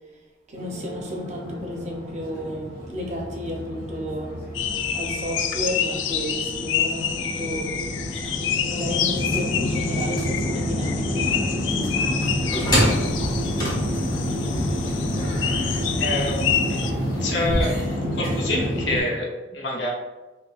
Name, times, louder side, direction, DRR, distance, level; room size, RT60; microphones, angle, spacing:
voice 1, 0.5-4.3 4.9-7.7 8.7-13.1, equal, 40° right, 0 dB, 0.6 m, -33 dB
sound 1, 0.6-19.0, equal, 50° left, 1.3 m, -29 dB
sound 2, 4.5-16.9, left 8 dB, 90° left, 0.3 m, -28 dB
sound 3, 12.2-17.7, equal, 20° left, 1.1 m, -27 dB
voice 2, 16.0-16.8 17.2-17.8 18.1-19.9, left 1 dB, 70° left, -1 dB, 0.8 m, -27 dB
5.3 x 2.3 x 2.4 m, 1.1 s
head